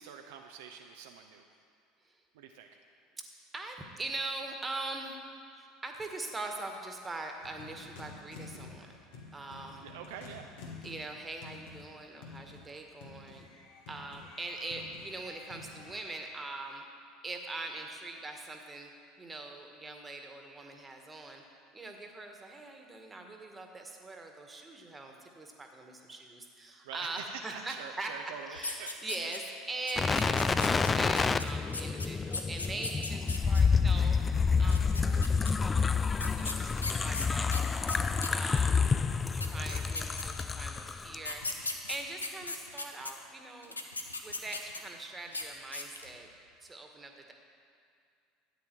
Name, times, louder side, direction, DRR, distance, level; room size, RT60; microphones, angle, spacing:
voice 1, 0.0-1.4 2.3-2.7 9.8-10.5 26.8-28.9 37.9-38.3, right 7 dB, 65° right, 4 dB, 0.6 m, -46 dB
voice 2, 3.5-5.2 5.6-9.0 9.3-9.9 10.8-13.5 13.9-16.8 17.2-18.9 19.2-21.4 21.7-28.1 28.5-34.2 34.6-37.8 38.3-38.8 39.2-43.8 44.2-46.3 46.6-47.3, right 2 dB, 15° right, 3 dB, 1.6 m, -42 dB
sound 1, 7.4-16.2, left 3 dB, 65° left, 1.8 m, -50 dB
sound 2, 28.5-29.6 29.9-33.6 34.6-35.5 36.2-38.7 39.1-39.2 39.4-40.6 41.2-43.1 43.6-45.0 45.3-45.4 45.7-46.1, left 3 dB, 85° left, 0.7 m, -38 dB
sound 3, 30.0-41.2 41.5-41.6, left 5 dB, 25° left, 0.4 m, -28 dB
13.0 x 9.3 x 4.6 m, 2.3 s
figure-of-eight pair, 70°, 0 cm